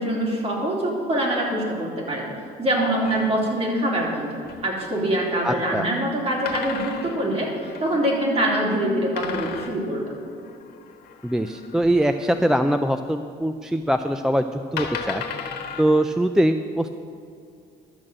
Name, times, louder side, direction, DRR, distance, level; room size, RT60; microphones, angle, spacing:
voice 1, 0.0-2.3 2.6-4.3 4.6-10.1, right 1 dB, 35° right, -2 dB, 3.1 m, -24 dB
sound 1, 2.8-3.3, left 3 dB, 35° left, 1.4 m, -34 dB
sound 2, 3.0-4.7 6.4-7.9 9.2-12.8 13.9-14.0 14.8-15.8, left 6 dB, 70° left, 1.4 m, -36 dB
voice 2, 5.4-5.9 11.2-15.2 15.8-17.0, right 1 dB, 5° right, 8 dB, 0.4 m, -22 dB
12.0 x 6.5 x 7.5 m, 2.4 s
cardioid pair, 110°, 17 cm